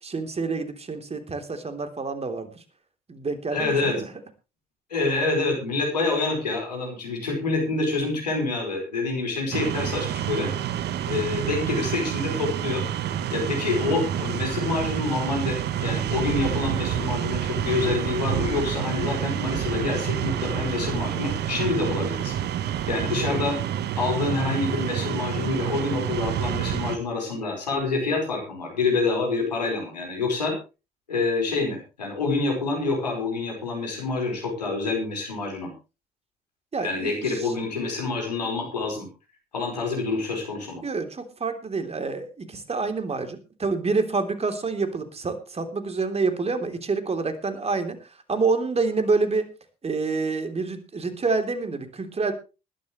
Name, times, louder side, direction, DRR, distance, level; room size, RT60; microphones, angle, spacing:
voice 1, 0.0-2.6 3.1-4.1 36.7-37.5 40.8-49.5 49.8-52.3, right 4 dB, 30° right, 8 dB, 3.3 m, -27 dB
voice 2, 3.5-4.0 4.9-10.5 11.1-12.8 13.3-22.3 22.6-23.6 24.0-30.5 31.1-35.7 36.8-39.1 39.5-40.8, left 3 dB, 90° left, 1 dB, 4.8 m, -27 dB
sound 1, 9.5-27.0, right 10 dB, 55° right, 1.2 m, -28 dB
20.5 x 12.0 x 3.2 m, 0.30 s
hypercardioid pair, 55°, 21 cm